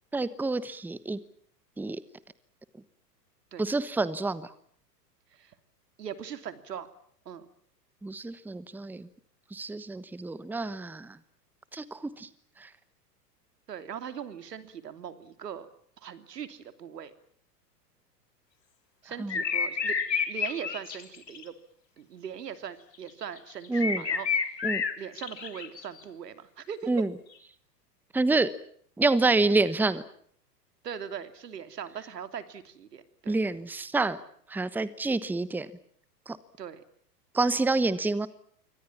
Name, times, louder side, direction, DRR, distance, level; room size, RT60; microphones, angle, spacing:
voice 1, 0.1-1.2 1.8-2.0 3.6-4.5 8.0-9.1 9.5-11.2 11.7-12.3 12.6-12.7 19.2-19.4 23.7-24.0 24.6-24.8 26.9-27.1 28.1-28.5 29.0-30.0 33.3-34.2 34.5-35.7 36.3-36.4 37.3-38.3, right 3 dB, 5° right, 16 dB, 1.1 m, -27 dB
voice 2, 6.0-6.9 7.2-7.5 13.7-15.7 16.0-17.1 19.0-20.0 20.3-21.5 22.0-24.6 25.0-26.9 30.8-33.4 36.6-36.8, right 8 dB, 70° right, 10 dB, 3.1 m, -40 dB
sound 1, 19.3-21.4 23.1-26.0, left 5 dB, 80° left, 3.5 m, -29 dB
27.0 x 24.5 x 7.3 m, 0.62 s
figure-of-eight pair, 105°, 49 cm